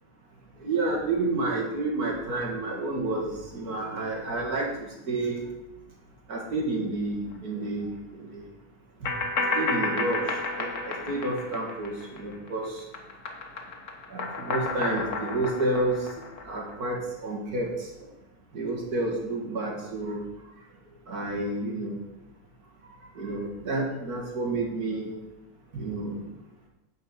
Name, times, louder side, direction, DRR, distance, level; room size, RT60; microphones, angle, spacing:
voice 1, 0.6-5.4 6.3-8.5 9.0-9.1 9.5-12.9 14.1-16.1 16.4-18.1 18.5-20.2 21.1-22.0 23.2-25.1 25.7-26.2, right 2 dB, 75° right, -2 dB, 2.4 m, -30 dB
sound 1, 9.0-12.5 12.8-16.7, left 3 dB, 75° left, 1.8 m, -32 dB
10.0 x 4.7 x 8.0 m, 0.93 s
omnidirectional pair, 1.6 m